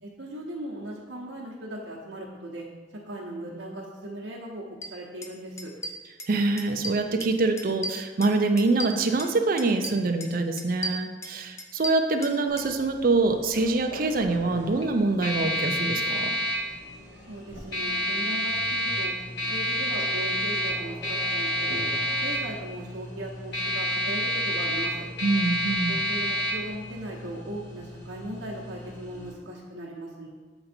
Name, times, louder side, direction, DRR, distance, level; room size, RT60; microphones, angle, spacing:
voice 1, 0.0-2.7 3.1-4.6 4.9-5.7 17.3-19.1 19.5-21.9 22.2-25.1 25.9-30.3, right 1 dB, 85° right, -5 dB, 1.0 m, -38 dB
sound 1, 4.8-4.9 5.2-5.3 5.6-6.3 6.6-7.3 7.6-9.3 9.6-10.3 10.6-12.7, equal, 15° left, 0.4 m, -35 dB
voice 2, 6.3-16.3 25.2-26.0, right 3 dB, 50° right, 5 dB, 0.5 m, -25 dB
sound 2, 12.5-29.3, equal, 65° left, 1.5 m, -30 dB
7.8 x 4.0 x 4.3 m, 1.4 s
head